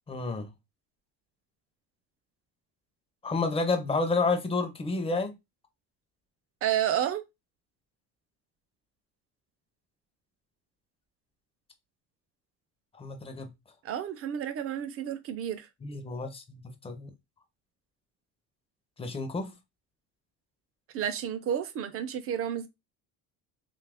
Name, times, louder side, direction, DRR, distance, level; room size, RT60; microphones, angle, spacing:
voice 1, 0.1-0.5 3.2-5.3 12.9-13.5 15.8-17.1 19.0-19.5, left 3 dB, 15° left, 0.6 m, -30 dB
voice 2, 6.6-7.2 13.8-15.7 20.9-22.7, right 10 dB, 40° right, 0.5 m, -31 dB
2.7 x 2.5 x 3.4 m
cardioid pair, 130°, 34 cm